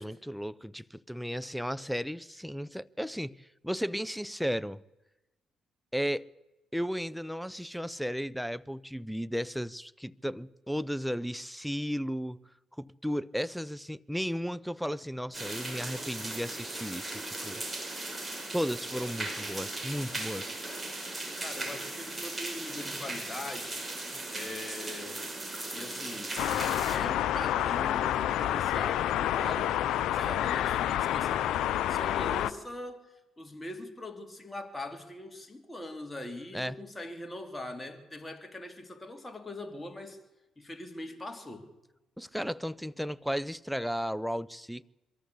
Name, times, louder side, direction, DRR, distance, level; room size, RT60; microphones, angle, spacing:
voice 1, 0.0-4.8 5.9-6.3 6.7-12.4 12.8-17.6 18.5-20.6 36.5-36.8 42.2-44.8, equal, ahead, 0.7 m, -34 dB
sound 1, 15.3-27.0, right 2 dB, 20° right, 5.4 m, -38 dB
voice 2, 21.4-23.8 24.3-25.4 25.7-26.3 26.9-29.8 30.1-40.2 40.6-41.7, left 2 dB, 20° left, 3.0 m, -42 dB
sound 2, 26.4-32.5, left 12 dB, 75° left, 0.7 m, -28 dB
23.0 x 14.0 x 8.4 m
supercardioid pair, 60°, 0 cm